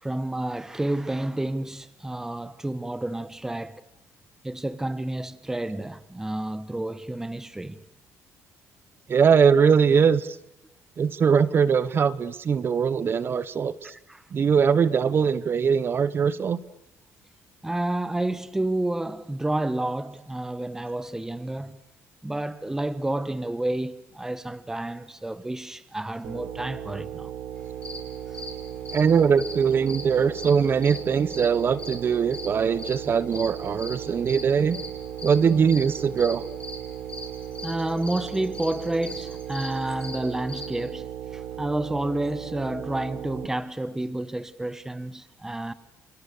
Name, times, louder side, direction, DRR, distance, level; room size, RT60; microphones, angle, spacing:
voice 1, 0.0-3.8 4.4-7.8 13.8-14.2 17.6-21.8 22.2-27.3 28.3-28.5 37.6-45.7, right 1 dB, 10° right, 1.2 m, -30 dB
voice 2, 9.1-10.4 11.0-13.7 14.3-16.6 28.9-34.8 35.2-36.4, right 6 dB, 40° right, 1.2 m, -21 dB
sound 1, 26.2-43.5, right 9 dB, 80° right, 2.2 m, -37 dB
sound 2, 27.6-40.7, left 2 dB, 20° left, 7.8 m, -41 dB
29.0 x 28.5 x 6.9 m
cardioid pair, 115°, 6 cm